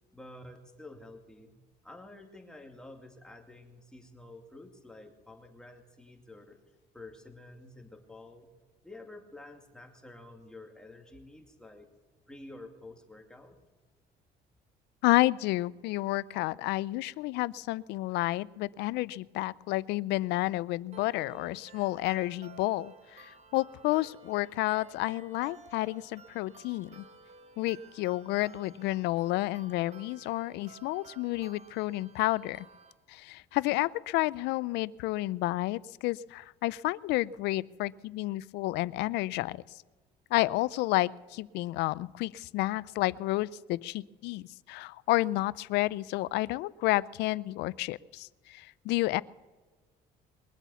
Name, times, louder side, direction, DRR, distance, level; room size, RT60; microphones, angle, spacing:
voice 1, 0.1-1.6 1.8-6.6 6.9-8.5 8.8-11.9 12.3-13.6, left 2 dB, 5° left, 2 dB, 2.4 m, -50 dB
voice 2, 15.0-27.0 27.6-32.7 33.1-39.6 40.3-49.2, left 18 dB, 85° left, 20 dB, 0.4 m, -30 dB
sound 1, 20.9-32.9, right 5 dB, 40° right, 1.6 m, -54 dB
22.0 x 8.3 x 7.0 m, 1.3 s
cardioid pair, 110°, 17 cm